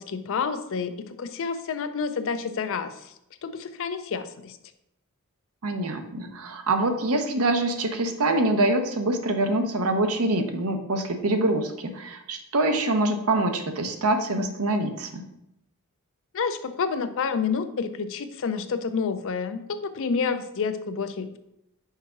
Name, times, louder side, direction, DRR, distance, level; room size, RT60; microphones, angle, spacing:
voice 1, 0.0-2.9 3.4-4.6 16.3-21.4, left 5 dB, 65° left, 10 dB, 0.5 m, -29 dB
voice 2, 5.6-15.2, right 2 dB, 75° right, 6 dB, 0.7 m, -25 dB
5.6 x 4.8 x 3.7 m, 0.82 s
head